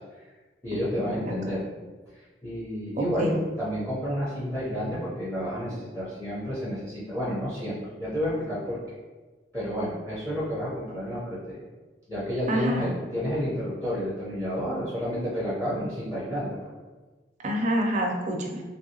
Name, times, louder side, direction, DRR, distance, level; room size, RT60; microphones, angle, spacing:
voice 1, 0.6-1.7 2.1-8.8 9.5-11.6 12.1-16.7, equal, 10° left, -10 dB, 0.7 m, -30 dB
voice 2, 3.0-3.4 12.5-12.9 17.4-18.6, equal, 40° right, 0 dB, 0.5 m, -27 dB
3.0 x 2.7 x 2.8 m, 1.3 s
head